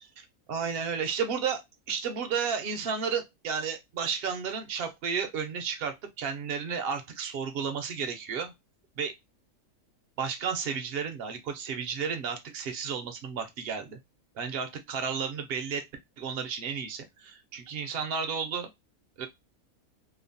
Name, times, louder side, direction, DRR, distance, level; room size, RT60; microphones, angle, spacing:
voice 1, 0.2-1.6 1.9-8.5 9.0-9.1 10.2-14.0 14.4-15.8 16.2-18.7 19.2-19.3, right 6 dB, 65° right, 0.6 m, -32 dB
3.0 x 2.0 x 2.5 m
omnidirectional pair, 1.5 m